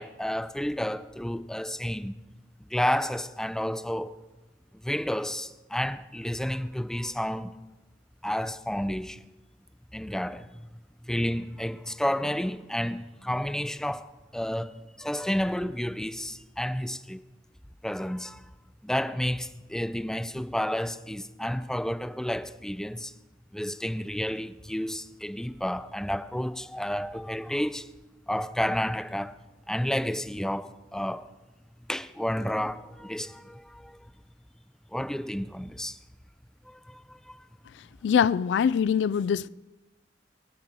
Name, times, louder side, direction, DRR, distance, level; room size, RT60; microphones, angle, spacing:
voice 1, 0.0-2.1 2.7-4.1 4.8-7.5 8.2-9.2 9.9-10.7 11.1-14.1 14.3-17.2 17.8-18.4 18.8-23.1 23.5-27.9 28.3-29.3 29.7-31.3 31.9-34.1 34.9-36.0 36.7-37.4, equal, 5° left, 0.4 m, -31 dB
voice 2, 38.0-39.5, left 7 dB, 75° left, 0.3 m, -23 dB
9.3 x 7.4 x 7.4 m
head